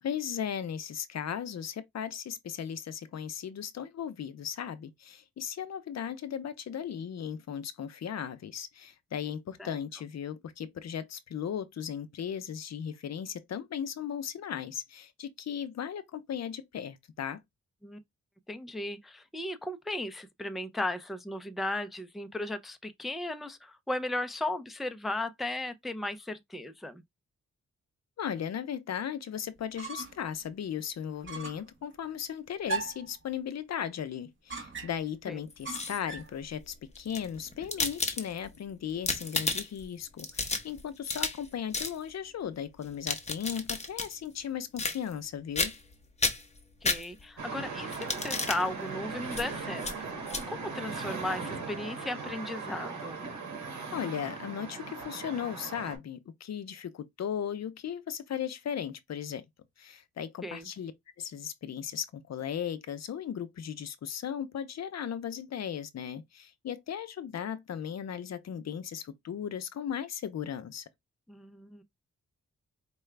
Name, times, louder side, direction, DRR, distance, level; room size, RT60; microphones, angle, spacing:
voice 1, 0.0-17.4 28.2-45.7 53.9-59.4 59.8-60.9 61.2-70.9, left 8 dB, 60° left, 0.6 m, -37 dB
voice 2, 18.5-27.0 35.3-35.4 46.8-53.2 60.4-60.7 71.3-71.8, left 1 dB, ahead, 0.4 m, -36 dB
sound 1, 29.6-30.3 30.6-30.7 31.2-31.7 32.7-33.1 34.5-35.1 35.7-36.4, right 4 dB, 40° right, 1.1 m, -38 dB
sound 2, 35.5-36.2 36.9-38.6 38.9-39.8 40.2-41.5 41.7-42.0 42.8-44.1 44.8-45.3 45.6-45.9 46.2-47.4 47.9-48.6 49.3-49.4 49.8-49.9 50.3-50.4, left 3 dB, 25° left, 0.8 m, -32 dB
sound 3, 47.4-56.0, right 4 dB, 70° right, 1.6 m, -39 dB
4.7 x 2.2 x 3.2 m
wide cardioid pair, 130°, 29 cm